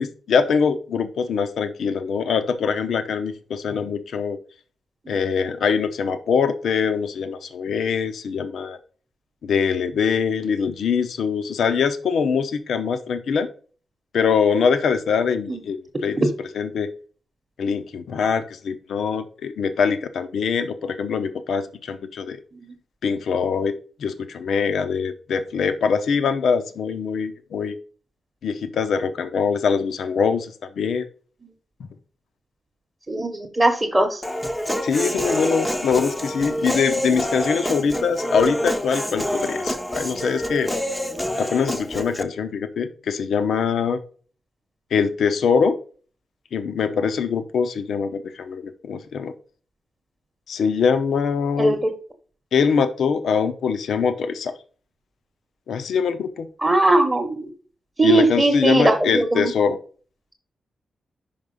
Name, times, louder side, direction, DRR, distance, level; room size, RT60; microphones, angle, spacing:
voice 1, 0.0-4.4 5.1-8.8 9.4-13.5 14.1-15.8 16.0-16.2 16.5-16.9 17.6-22.4 23.0-23.7 24.0-27.8 28.4-31.0 34.8-40.7 41.4-44.0 44.9-45.8 46.5-49.3 50.5-51.7 52.5-54.6 55.7-56.5 58.0-59.8, left 6 dB, 75° left, 10 dB, 0.8 m, -23 dB
voice 2, 33.1-34.2 51.6-51.9 56.6-57.5 58.0-59.5, right 2 dB, 15° right, 3 dB, 1.0 m, -19 dB
Human voice, 34.2-42.2, equal, 5° left, 0.6 m, -27 dB
5.9 x 5.3 x 5.3 m, 0.41 s
wide cardioid pair, 175°, 0 cm